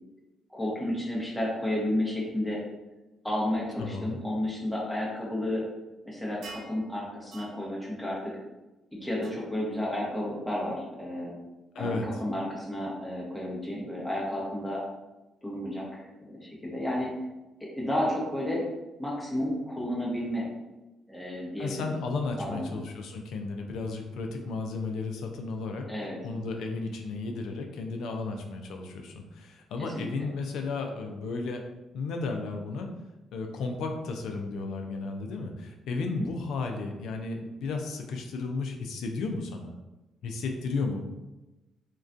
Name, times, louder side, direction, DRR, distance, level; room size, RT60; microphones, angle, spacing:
voice 1, 0.5-2.6 3.2-5.6 6.1-8.4 9.0-11.3 11.8-14.8 15.4-16.0 16.3-17.1 17.6-18.6 19.0-20.5 21.1-21.9 22.4-22.7 25.9-26.2 29.9-30.1 36.2-36.3, left 1 dB, 5° left, -5 dB, 0.8 m, -32 dB
voice 2, 3.8-4.2 11.7-12.0 21.6-25.9 26.2-31.6 31.9-32.9 33.3-39.7 40.2-41.1, left 3 dB, 80° left, 4 dB, 0.3 m, -33 dB
sound 1, 6.4-6.8 7.3-7.6 9.2-9.3, right 4 dB, 65° right, 0.3 m, -44 dB
2.3 x 2.2 x 2.5 m, 1.0 s
cardioid pair, 90°, 0 cm